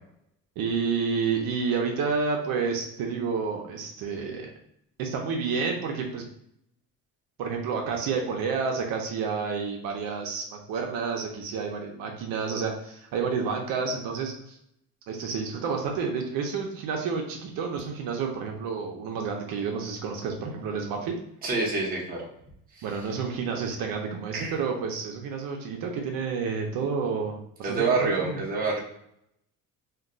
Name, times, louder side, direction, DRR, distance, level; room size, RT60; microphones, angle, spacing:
voice 1, 0.6-4.5 5.0-6.2 7.4-14.6 15.1-21.1 22.8-27.8 28.2-28.4, right 5 dB, 70° right, 1 dB, 0.6 m, -30 dB
voice 2, 21.4-22.3 22.7-22.9 24.3-24.6 27.6-28.8, right 4 dB, 25° right, -3 dB, 0.7 m, -27 dB
2.3 x 2.2 x 3.7 m, 0.75 s
cardioid pair, 160°, 36 cm